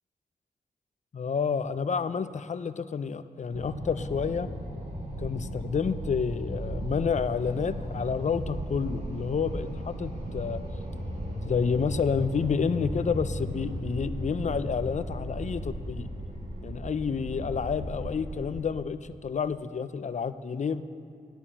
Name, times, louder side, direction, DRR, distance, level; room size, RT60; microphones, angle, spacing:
voice 1, 1.1-4.5 5.2-10.6 11.4-16.1 16.6-20.8, left 6 dB, 50° left, 13 dB, 0.5 m, -29 dB
sound 1, 3.5-18.5, right 1 dB, 45° right, 2.3 m, -36 dB
9.0 x 8.8 x 7.2 m, 2.3 s
cardioid pair, 65°, 16 cm